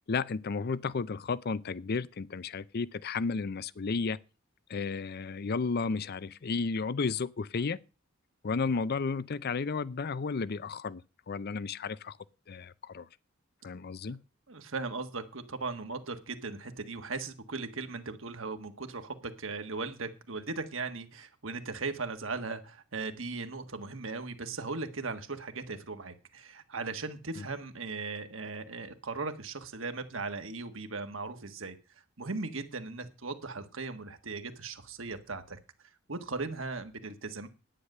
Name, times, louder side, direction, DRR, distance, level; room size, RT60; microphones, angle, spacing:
voice 1, 0.1-4.2 4.7-7.8 8.4-11.0 11.3-12.2 12.5-13.1 13.6-14.2 27.4-27.5, left 4 dB, 50° left, 0.5 m, -33 dB
voice 2, 14.5-31.8 32.2-35.6 36.1-37.5, right 3 dB, 70° right, 1.5 m, -38 dB
10.0 x 9.6 x 6.6 m
head